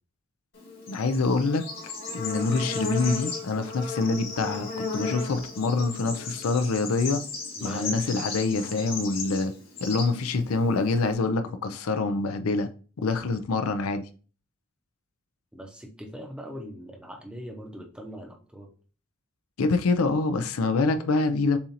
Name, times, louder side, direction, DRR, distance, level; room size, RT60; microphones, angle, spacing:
Bird / Insect, 0.5-11.1, left 3 dB, 60° left, 2.0 m, -35 dB
voice 1, 0.9-7.2 7.6-9.5 9.8-12.7 13.0-14.1 19.6-21.6, left 3 dB, 85° left, 0.5 m, -26 dB
voice 2, 7.6-8.0 15.5-18.7, equal, 5° right, 0.7 m, -41 dB
6.8 x 2.5 x 2.8 m
head